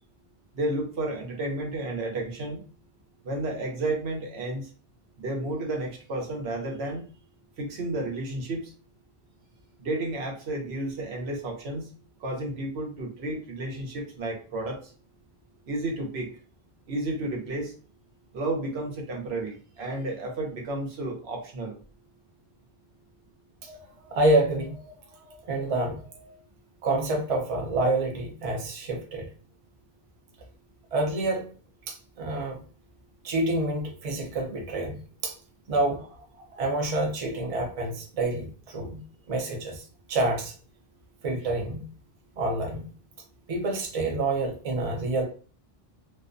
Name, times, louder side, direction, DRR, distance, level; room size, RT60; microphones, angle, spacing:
voice 1, 0.5-2.6 3.2-4.7 5.2-7.0 7.6-8.6 9.8-11.9 12.2-14.8 15.7-16.3 16.9-17.7 18.3-21.8, right 2 dB, 90° right, 1 dB, 1.0 m, -32 dB
voice 2, 24.0-24.9 25.4-26.4 26.8-29.3 30.9-31.5 31.9-32.6 33.2-35.3 35.7-36.1 36.6-39.0 39.3-39.8 40.1-40.5 41.2-41.8 42.4-42.8 43.5-45.2, right 2 dB, 40° right, 1 dB, 0.6 m, -27 dB
2.4 x 2.1 x 2.5 m, 0.40 s
omnidirectional pair, 1.0 m